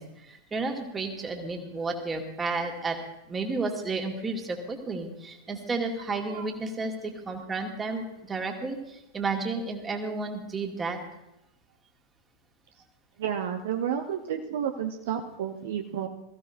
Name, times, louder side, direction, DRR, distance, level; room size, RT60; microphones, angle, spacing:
voice 1, 0.0-3.0 3.3-11.0, right 3 dB, 15° right, 3 dB, 2.0 m, -32 dB
voice 2, 13.2-16.1, right 9 dB, 55° right, 5 dB, 0.9 m, -31 dB
21.5 x 14.5 x 2.7 m, 0.89 s
figure-of-eight pair, 90°, 0 cm